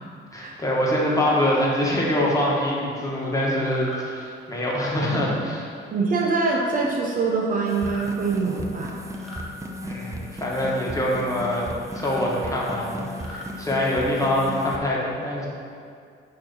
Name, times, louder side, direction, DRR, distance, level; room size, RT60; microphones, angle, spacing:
voice 1, 0.3-5.7 9.7-11.6 11.9-15.5, left 1 dB, 15° left, -5 dB, 1.4 m, -24 dB
sound 1, 3.7-4.0 5.0-5.3 6.4-6.7 7.7-8.1 9.1-9.5 10.5-10.8 11.8-12.2 13.1-13.5, left 2 dB, ahead, 1.3 m, -40 dB
voice 2, 5.9-8.9, right 4 dB, 45° right, -2 dB, 0.9 m, -24 dB
sound 2, 7.6-14.8, left 1 dB, 15° right, 0.6 m, -36 dB
6.6 x 3.0 x 5.4 m, 2.3 s
cardioid pair, 90°, 20 cm